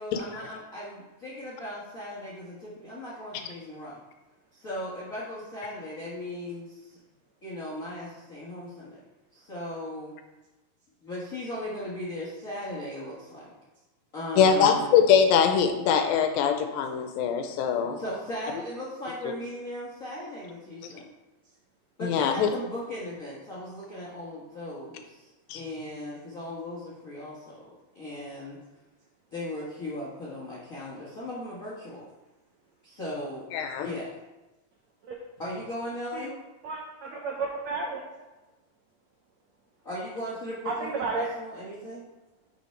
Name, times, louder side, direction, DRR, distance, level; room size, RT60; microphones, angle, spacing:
voice 1, 0.0-4.0 4.5-7.0 7.4-9.0 9.3-10.1 11.0-13.5 14.1-14.9 17.7-21.1 22.0-28.6 29.3-32.1 32.8-33.4 33.8-34.1 35.4-36.3 39.8-42.0, left 1 dB, 60° left, -7 dB, 0.8 m, -37 dB
voice 2, 14.4-18.0 22.0-22.5 25.5-25.6 33.5-33.9, left 7 dB, 80° left, 5 dB, 2.4 m, -22 dB
voice 3, 36.6-38.0 40.7-41.3, right 4 dB, 80° right, -1 dB, 1.5 m, -32 dB
6.4 x 5.6 x 4.5 m, 1.1 s
omnidirectional pair, 4.2 m